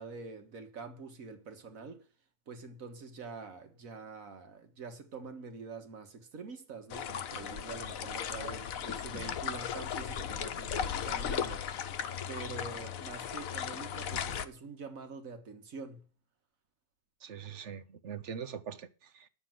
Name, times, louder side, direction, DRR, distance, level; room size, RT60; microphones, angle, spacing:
voice 1, 0.0-2.1 2.5-11.8 12.3-16.1, right 4 dB, 80° right, 1.9 m, -45 dB
sound 1, 6.9-14.5, left 8 dB, 85° left, 1.3 m, -36 dB
voice 2, 17.2-19.3, right 7 dB, 60° right, 1.1 m, -42 dB
9.8 x 7.0 x 7.6 m
omnidirectional pair, 1.4 m